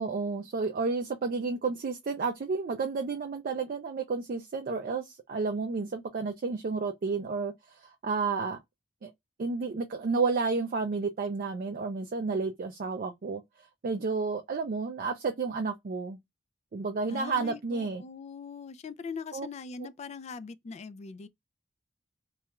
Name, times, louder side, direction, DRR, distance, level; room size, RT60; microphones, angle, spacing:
voice 1, 0.0-8.6 9.0-9.1 9.4-13.4 13.8-16.2 16.7-18.0 19.3-19.5, right 4 dB, 50° right, 0.4 m, -31 dB
voice 2, 17.1-21.3, left 5 dB, 35° left, 0.3 m, -41 dB
2.3 x 2.2 x 2.8 m
head